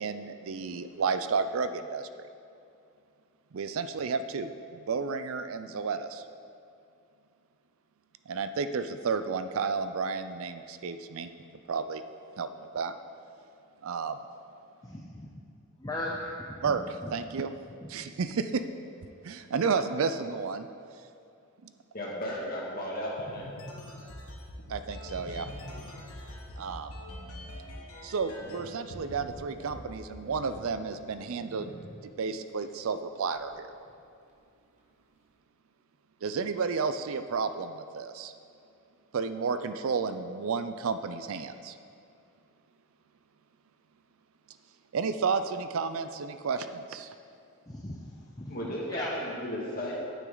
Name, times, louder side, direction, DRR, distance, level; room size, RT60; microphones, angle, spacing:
voice 1, 0.0-2.1 3.5-6.2 8.3-11.3 11.7-12.0 12.4-12.9 13.8-14.2 16.6-17.5 17.9-18.6 19.2-20.7 21.6-21.7 24.7-25.5 26.6-26.9 28.0-31.8 32.0-33.7 36.2-38.3 39.1-41.8 44.9-47.1, right 5 dB, 70° right, 10 dB, 0.4 m, -32 dB
voice 2, 14.8-15.3 15.8-16.7 17.0-17.1 47.7-48.6 48.9-49.1, left 1 dB, 15° left, -4 dB, 0.6 m, -37 dB
voice 3, 21.9-23.4 48.5-49.9, equal, 40° left, -4 dB, 2.0 m, -34 dB
sound 1, 23.2-28.6 28.9-29.3 29.7-31.1, left 1 dB, 90° left, 1.3 m, -43 dB
sound 2, 28.1-32.2 32.6-32.7 33.2-33.9 34.3-34.4 34.8-34.9, right 2 dB, 30° right, 1.4 m, -48 dB
9.2 x 8.9 x 3.9 m, 2.5 s
head